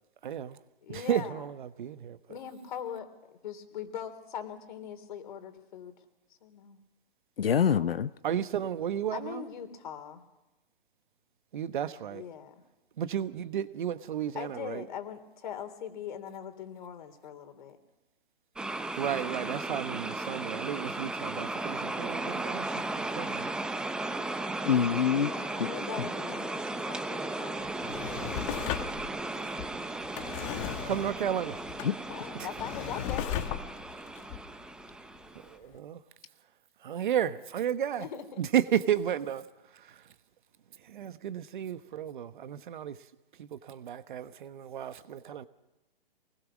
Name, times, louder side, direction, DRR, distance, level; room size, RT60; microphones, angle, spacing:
voice 1, 0.2-0.6 0.9-2.2 8.2-9.4 11.5-12.2 13.0-14.8 19.0-23.5 25.2-25.3 30.9-31.6 32.3-32.5 35.5-36.0 36.8-38.1 38.4-39.4 39.7-40.0 40.8-43.0 43.4-45.5, right 9 dB, 55° right, 1.2 m, -33 dB
voice 2, 0.8-1.5 2.3-5.9 6.4-6.8 9.1-10.2 12.1-12.5 14.3-17.8 25.1-28.2 32.1-33.3 38.0-38.4, left 8 dB, 55° left, 3.3 m, -41 dB
voice 3, 7.4-8.1 24.7-25.3 31.8-31.9, left 8 dB, 75° left, 0.8 m, -25 dB
sound 1, 18.6-35.6, right 2 dB, 5° right, 0.6 m, -36 dB
Drawer open or close, 27.6-35.3 35.8-35.9, left 11 dB, 35° left, 1.3 m, -37 dB
24.0 x 20.0 x 6.3 m
hypercardioid pair, 135°, 29 cm